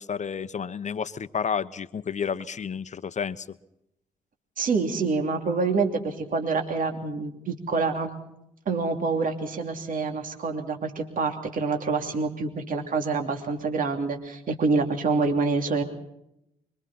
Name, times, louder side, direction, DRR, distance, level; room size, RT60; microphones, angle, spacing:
voice 1, 0.0-3.5, left 6 dB, 45° left, 13 dB, 1.1 m, -31 dB
voice 2, 4.6-8.1 8.7-15.8, right 4 dB, 55° right, 3 dB, 2.9 m, -26 dB
25.0 x 24.0 x 4.3 m, 0.79 s
hypercardioid pair, 40°, 17 cm